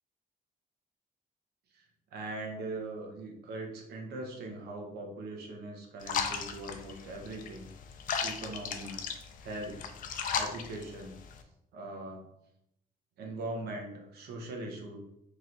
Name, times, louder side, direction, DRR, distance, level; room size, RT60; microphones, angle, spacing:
voice 1, 2.1-7.7 8.2-9.0 9.4-9.8 10.3-11.2 11.7-12.2 13.2-15.0, right 2 dB, 80° right, 2 dB, 0.9 m, -40 dB
sound 1, 6.0-11.4, left 6 dB, 55° left, 0.4 m, -36 dB
3.2 x 3.0 x 3.8 m, 0.79 s
cardioid pair, 175°, 16 cm